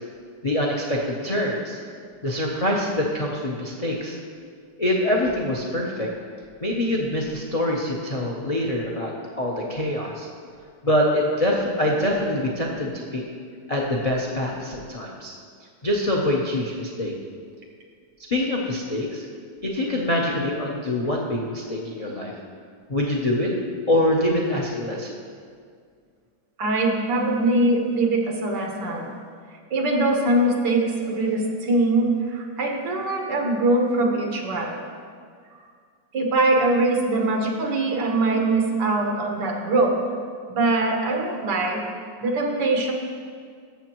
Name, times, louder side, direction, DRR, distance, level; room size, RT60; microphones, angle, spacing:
voice 1, 0.4-1.8 2.2-4.2 4.8-6.1 6.6-9.1 9.4-10.3 10.8-13.2 13.7-15.3 15.8-17.1 18.3-19.2 19.6-22.3 22.9-23.5 23.9-25.2, left 1 dB, 70° left, -1 dB, 0.3 m, -24 dB
voice 2, 26.6-29.1 29.7-34.8 36.1-40.0 40.5-41.8 42.2-42.9, right 2 dB, 70° right, 1 dB, 1.7 m, -22 dB
14.0 x 7.1 x 3.0 m, 2.1 s
omnidirectional pair, 1.9 m